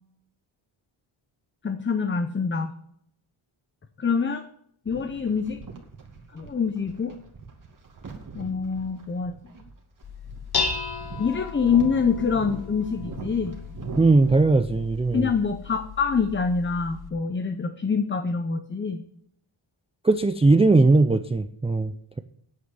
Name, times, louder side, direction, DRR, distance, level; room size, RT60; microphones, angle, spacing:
voice 1, 1.6-2.7 4.0-4.4 4.9-5.6 6.3-7.1 8.3-9.3 11.2-13.6 15.1-19.0, left 5 dB, 25° left, 9 dB, 0.7 m, -25 dB
sound 1, 4.9-14.4, right 4 dB, 40° right, 2.4 m, -42 dB
Dishes pots and pans, 10.0-17.1, left 5 dB, 50° left, 1.4 m, -35 dB
voice 2, 14.0-15.3 20.0-22.2, right 3 dB, 15° right, 10 dB, 0.3 m, -19 dB
9.6 x 8.3 x 7.5 m, 0.71 s
wide cardioid pair, 165°, 50 cm